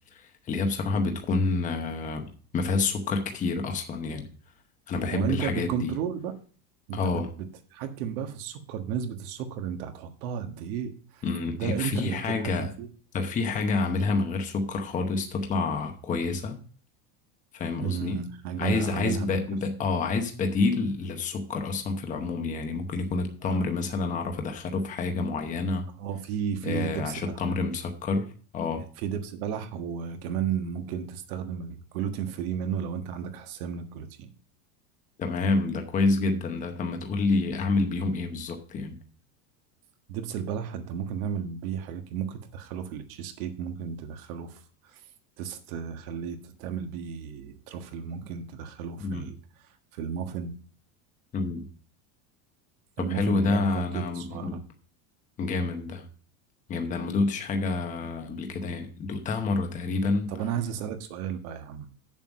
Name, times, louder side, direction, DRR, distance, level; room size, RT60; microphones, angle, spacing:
voice 1, 0.1-4.3 4.9-5.9 6.9-7.3 11.2-12.7 13.1-16.6 17.5-18.2 18.6-25.9 26.6-28.8 35.2-39.0 49.0-49.3 51.3-51.6 53.0-54.6 55.4-56.0 56.7-60.3, left 3 dB, 20° left, 5 dB, 0.9 m, -28 dB
voice 2, 5.1-6.3 6.9-7.5 7.7-11.2 11.5-12.9 17.8-19.4 23.4-23.5 26.0-27.4 29.0-34.3 40.1-45.0 45.4-49.4 49.9-50.5 53.0-54.6 60.3-61.9, right 8 dB, 75° right, 6 dB, 1.6 m, -33 dB
7.6 x 7.2 x 5.1 m, 0.42 s
cardioid pair, 175°, 43 cm